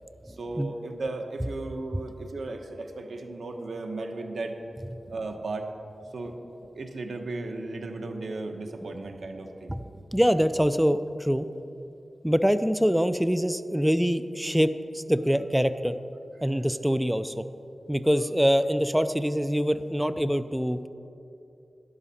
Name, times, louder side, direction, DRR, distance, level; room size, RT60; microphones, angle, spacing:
voice 1, 0.3-4.6 5.1-5.7 6.1-6.3 6.8-9.7, right 2 dB, 85° right, 4 dB, 1.0 m, -35 dB
voice 2, 10.1-11.5 12.2-15.9 16.4-17.4 17.9-20.9, equal, 5° right, 11 dB, 0.4 m, -24 dB
12.0 x 11.5 x 4.2 m, 2.7 s
wide cardioid pair, 85°, 0 cm